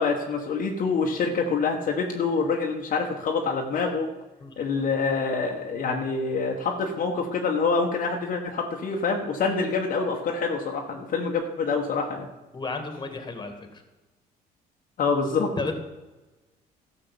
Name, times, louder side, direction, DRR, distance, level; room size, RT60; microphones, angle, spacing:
voice 1, 0.0-4.1 4.6-12.3 15.0-15.7, left 4 dB, 55° left, 1 dB, 1.5 m, -26 dB
voice 2, 12.5-13.8 15.6-15.7, left 3 dB, 25° left, 6 dB, 2.2 m, -33 dB
13.0 x 7.0 x 7.1 m, 1.1 s
cardioid pair, 110°, 17 cm